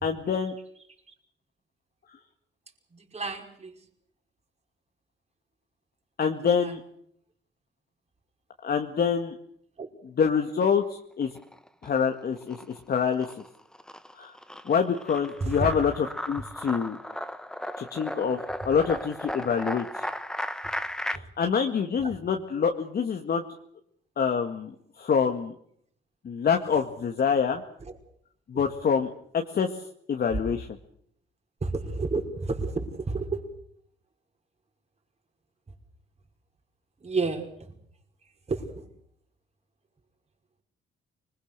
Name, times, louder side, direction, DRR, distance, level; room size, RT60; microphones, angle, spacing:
voice 1, 0.0-0.5 6.2-6.8 8.6-9.4 10.2-11.3 11.8-13.3 14.2-14.3 14.7-17.0 17.8-20.1 21.1-23.4 24.2-25.5 26.2-27.6 28.5-29.8 30.1-30.7, left 6 dB, 50° left, 4 dB, 2.0 m, -26 dB
voice 2, 2.9-3.8 6.6-6.7 9.8-9.9 15.4-15.7 18.7-19.0 22.0-22.1 27.8-28.0 31.6-33.4 37.0-37.7 38.5-38.9, right 3 dB, 30° right, 2 dB, 5.4 m, -31 dB
sound 1, 11.2-12.0 12.4-21.2, left 1 dB, 5° left, 1.1 m, -36 dB
25.5 x 21.0 x 6.8 m, 0.68 s
cardioid pair, 90°, 20 cm